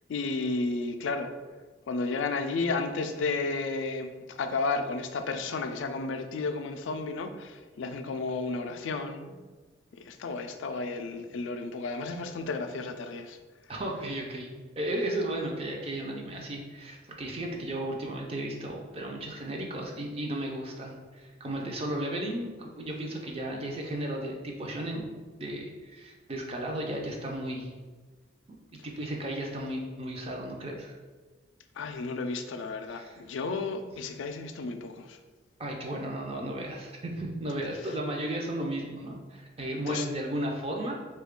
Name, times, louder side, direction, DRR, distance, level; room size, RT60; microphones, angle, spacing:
voice 1, 0.1-1.3 1.9-9.4 10.1-13.4 31.8-35.2 39.9-40.1, left 3 dB, 75° left, 7 dB, 0.3 m, -32 dB
voice 2, 13.7-14.5 14.8-25.1 25.4-27.7 28.8-30.9 32.9-33.2 35.6-41.0, right 1 dB, 30° right, 0 dB, 0.4 m, -34 dB
3.1 x 2.3 x 3.6 m, 1.4 s
head